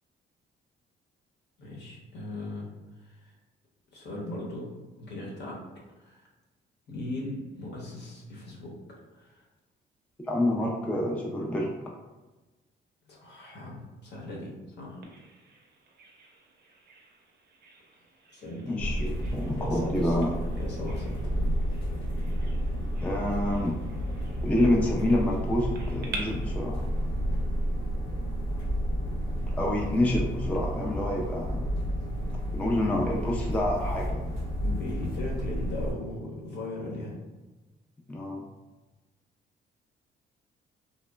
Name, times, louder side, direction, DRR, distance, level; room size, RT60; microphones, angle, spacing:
voice 1, 1.6-2.7 3.0-3.3 3.9-4.7 5.0-5.6 6.0-6.2 6.9-8.7 9.1-9.4 13.1-15.0 18.3-18.8 19.6-20.2 20.6-21.1 34.6-37.2, left 2 dB, 60° left, -3 dB, 0.9 m, -38 dB
voice 2, 10.2-11.7 18.6-20.4 23.0-23.8 24.4-26.8 29.5-31.7 32.5-34.3 38.1-38.5, left 1 dB, 5° left, -2 dB, 0.3 m, -28 dB
Bird vocalization bird call bird song, 15.0-26.2, right 4 dB, 55° right, 0.5 m, -49 dB
sound 1, 18.8-35.9, equal, 90° left, 0.5 m, -31 dB
3.0 x 2.1 x 2.2 m, 1.1 s
cardioid pair, 90°, 20 cm